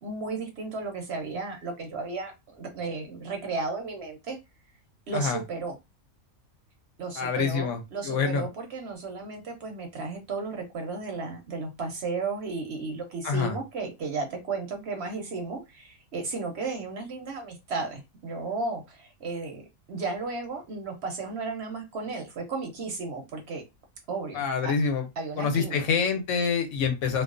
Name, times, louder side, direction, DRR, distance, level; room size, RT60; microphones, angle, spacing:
voice 1, 0.0-4.4 5.1-5.8 7.0-19.6 19.9-23.6 24.1-24.7 25.2-25.8, right 3 dB, 60° right, 3 dB, 0.8 m, -34 dB
voice 2, 7.2-8.4 13.2-13.6 24.3-25.0 25.4-27.2, left 5 dB, 70° left, 7 dB, 0.9 m, -26 dB
2.3 x 2.3 x 2.4 m, 0.23 s
omnidirectional pair, 1.4 m